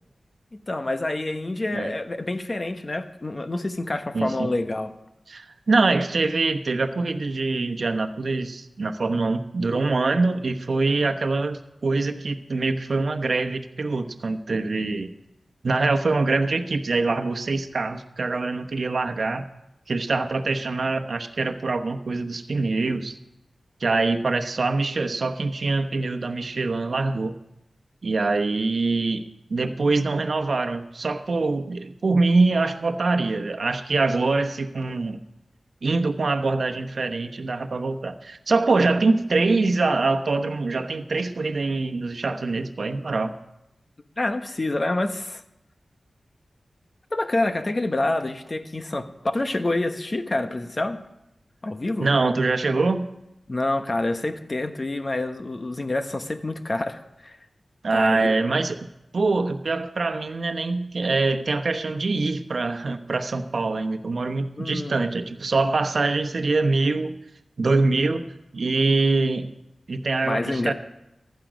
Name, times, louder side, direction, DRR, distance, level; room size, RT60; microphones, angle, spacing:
voice 1, 0.7-4.9 44.2-45.4 47.1-51.0 51.6-52.1 53.5-57.4 57.9-58.3 64.6-64.9 70.2-70.7, left 2 dB, 40° left, 8 dB, 1.1 m, -27 dB
voice 2, 4.1-4.5 5.3-15.1 15.6-19.4 19.9-23.1 23.8-27.3 28.0-29.2 29.5-35.2 35.8-43.3 52.0-53.1 57.8-58.8 59.1-67.2 67.6-68.3 68.5-69.4 69.9-70.7, right 3 dB, 70° right, 7 dB, 1.0 m, -24 dB
15.0 x 11.5 x 5.2 m, 0.88 s
wide cardioid pair, 65°, 0 cm